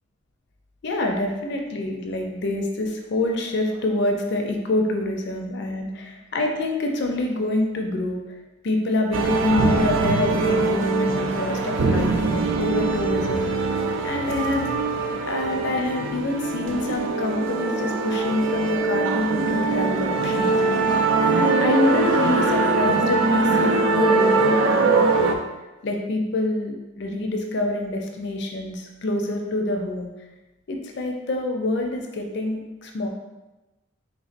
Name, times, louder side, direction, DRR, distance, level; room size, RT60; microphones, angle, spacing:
voice 1, 0.8-8.2 8.6-13.4 14.0-14.7 15.3-20.6 21.3-25.4 25.8-30.1 30.7-33.1, left 2 dB, 65° left, 2 dB, 0.5 m, -26 dB
sound 1, 9.1-25.3, right 3 dB, 85° right, 0.4 m, -22 dB
4.0 x 3.2 x 2.5 m, 1.1 s
head